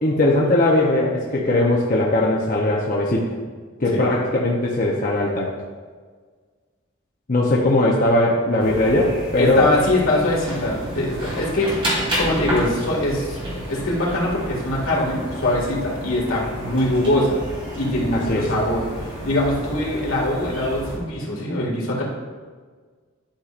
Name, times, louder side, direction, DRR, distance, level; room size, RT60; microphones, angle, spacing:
voice 1, 0.0-3.3 3.8-5.5 7.3-9.7 18.1-18.4, left 1 dB, 40° left, -3 dB, 0.8 m, -19 dB
sound 1, 8.6-21.0, equal, 25° right, 2.3 m, -31 dB
voice 2, 9.4-11.8 12.2-13.4 13.7-17.4 17.8-18.8 19.2-22.0, left 1 dB, 75° left, -4 dB, 2.0 m, -22 dB
11.5 x 5.7 x 2.5 m, 1.5 s
head